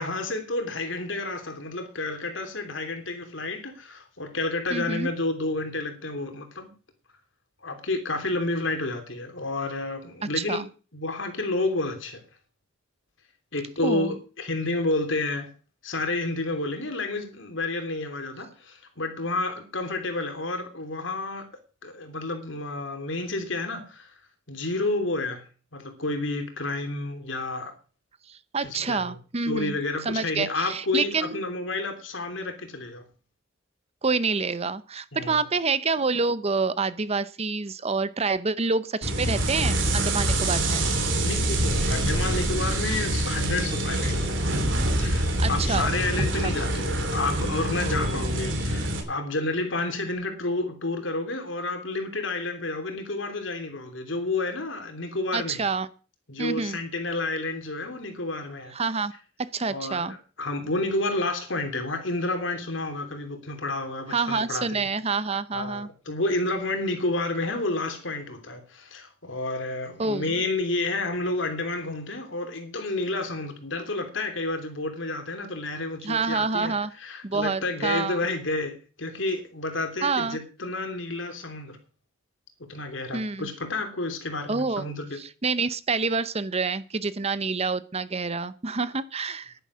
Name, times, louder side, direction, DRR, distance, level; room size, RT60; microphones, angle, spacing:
voice 1, 0.0-6.7 7.6-10.6 10.9-12.2 13.5-15.5 15.8-21.4 21.8-24.1 24.5-25.4 25.7-27.7 28.6-29.2 29.5-33.0 35.1-35.4 41.2-44.5 45.0-55.6 56.3-58.7 59.7-64.9 65.5-81.8 82.6-85.2, left 2 dB, 70° left, 3.2 m, -30 dB
voice 2, 4.7-5.1 10.4-10.7 13.8-14.1 28.3-31.4 34.0-40.8 45.4-45.9 46.2-46.5 55.3-55.9 56.4-56.8 58.7-59.1 59.4-60.2 64.1-65.9 70.0-70.3 76.0-76.9 77.2-78.2 80.0-80.4 83.1-83.5 84.5-84.8 85.1-89.5, right 4 dB, 30° right, 0.8 m, -27 dB
sound 1, 39.0-49.0, right 1 dB, 70° right, 3.1 m, -25 dB
11.0 x 10.0 x 6.2 m
head